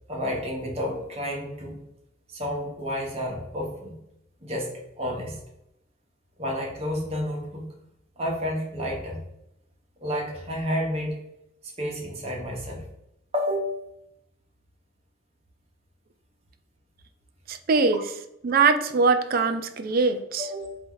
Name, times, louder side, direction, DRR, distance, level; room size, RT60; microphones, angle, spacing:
voice 1, 0.1-1.8 2.3-4.0 4.4-4.7 5.0-5.4 6.4-7.6 8.2-9.2 10.0-11.2 11.6-12.9 13.3-13.8 17.7-17.8 20.4-20.8, equal, 35° right, -1 dB, 1.1 m, -30 dB
voice 2, 17.5-18.0 18.4-20.5, right 4 dB, 50° right, 9 dB, 0.4 m, -22 dB
4.3 x 2.7 x 3.8 m, 0.81 s
head